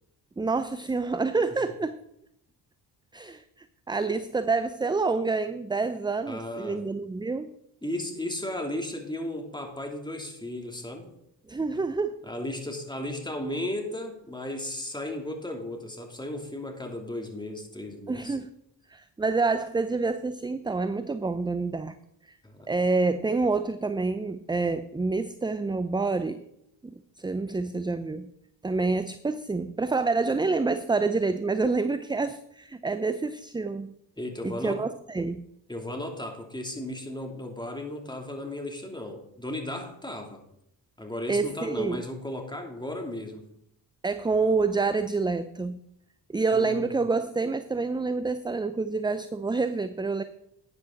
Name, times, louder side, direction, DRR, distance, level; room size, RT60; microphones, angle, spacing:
voice 1, 0.4-2.0 3.1-3.4 3.9-7.5 11.5-12.2 18.1-18.5 18.9-22.0 22.7-26.4 26.8-28.3 28.6-33.9 34.4-35.4 41.3-42.0 44.0-45.8 46.3-50.2, right 3 dB, 10° right, 12 dB, 0.5 m, -27 dB
voice 2, 6.3-6.9 7.8-11.1 11.7-11.8 12.2-18.3 22.4-22.8 34.2-34.9 35.7-40.4 41.0-43.4 46.5-46.9, left 1 dB, 10° left, 3 dB, 2.9 m, -35 dB
12.0 x 9.6 x 4.0 m, 0.77 s
hypercardioid pair, 50°, 50 cm